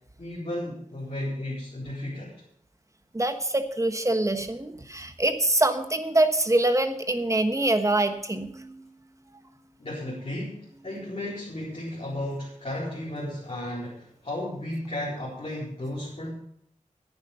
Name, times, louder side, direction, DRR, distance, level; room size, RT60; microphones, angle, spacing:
voice 1, 0.2-2.4 9.8-16.3, left 1 dB, 45° left, -7 dB, 4.3 m, -34 dB
voice 2, 3.1-8.8, right 2 dB, 25° right, 8 dB, 1.2 m, -24 dB
10.5 x 9.3 x 6.8 m, 0.70 s
wide cardioid pair, 85°, 13 cm